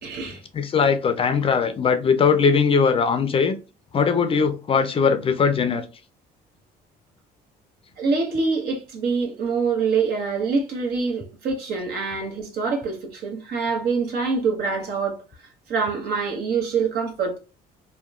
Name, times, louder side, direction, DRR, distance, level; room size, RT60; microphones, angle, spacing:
voice 1, 0.0-0.4 8.0-15.2 15.7-17.4, right 5 dB, 65° right, 1.0 m, -25 dB
voice 2, 0.5-3.6 3.9-5.8, left 5 dB, 35° left, 0.4 m, -20 dB
2.8 x 2.1 x 2.4 m
cardioid pair, 110°, 17 cm